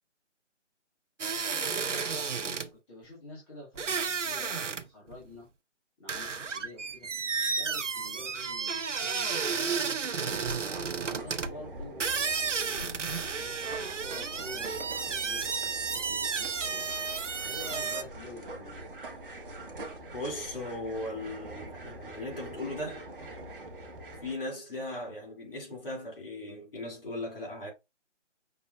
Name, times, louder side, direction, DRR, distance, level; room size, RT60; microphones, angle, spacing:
sound 1, 1.2-2.7 3.8-4.9 5.1-5.2 6.1-11.5 12.0-18.0, right 5 dB, 80° right, 0.8 m, -32 dB
voice 1, 1.6-5.5 6.0-7.1 7.4-10.4 11.0-16.8 17.4-19.0, left 1 dB, 20° left, 2.0 m, -48 dB
sound 2, 10.2-24.3, right 1 dB, 45° right, 1.2 m, -44 dB
voice 2, 20.1-23.1 24.2-27.7, left 1 dB, 50° left, 2.7 m, -38 dB
5.8 x 3.5 x 2.4 m
figure-of-eight pair, 155°, 36 cm